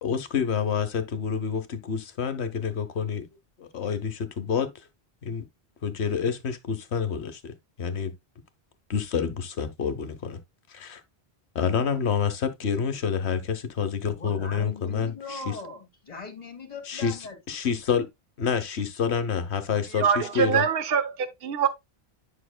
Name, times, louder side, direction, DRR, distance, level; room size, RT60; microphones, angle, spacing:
voice 1, 0.0-3.3 3.6-4.7 5.2-5.4 5.8-7.5 7.8-8.1 8.9-10.4 10.7-11.0 11.5-15.6 16.9-17.2 17.5-18.1 18.4-20.6, left 6 dB, 90° left, 1.3 m, -28 dB
voice 2, 14.1-17.6, left 3 dB, 40° left, 2.0 m, -40 dB
voice 3, 20.0-21.7, right 7 dB, 65° right, 1.1 m, -24 dB
10.0 x 5.8 x 2.2 m
omnidirectional pair, 1.1 m